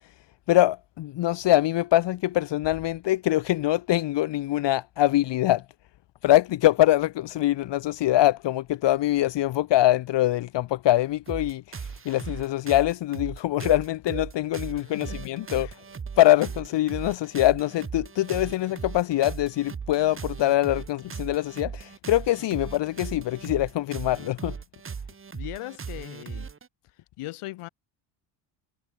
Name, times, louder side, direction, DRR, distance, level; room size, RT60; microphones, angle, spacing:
voice 1, 0.5-5.6 6.2-11.8 12.0-15.7 16.2-24.5, left 14 dB, 60° left, 1.1 m, -23 dB
sound 1, 11.3-26.7, right 6 dB, 25° right, 2.8 m, -38 dB
voice 2, 14.7-15.2 15.6-15.8 25.3-26.5 27.2-27.7, left 17 dB, 85° left, 2.8 m, -39 dB
cardioid pair, 150°, 50 cm